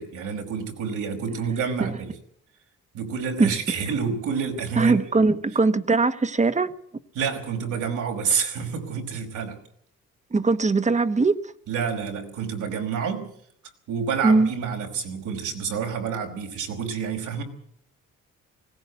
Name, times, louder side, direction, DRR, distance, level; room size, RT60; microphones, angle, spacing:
voice 1, 0.0-2.1 2.9-5.3 7.2-9.6 11.7-13.3 13.9-17.4, right 6 dB, 80° right, 5.2 m, -28 dB
voice 2, 4.8-6.7 10.3-11.4 14.2-14.5, right 3 dB, 25° right, 1.2 m, -20 dB
20.0 x 17.5 x 8.4 m
cardioid pair, 90°, 30 cm